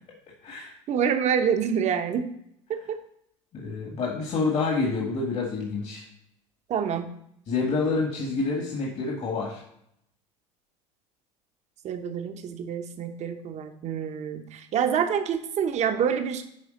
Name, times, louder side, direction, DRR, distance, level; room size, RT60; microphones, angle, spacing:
voice 1, 0.9-2.3 2.7-3.0 6.7-7.1 11.8-16.4, right 7 dB, 45° right, 7 dB, 1.0 m, -27 dB
voice 2, 3.5-6.0 7.5-9.6, left 4 dB, 45° left, -2 dB, 1.8 m, -28 dB
9.7 x 3.4 x 5.1 m, 0.74 s
hypercardioid pair, 90°, 16 cm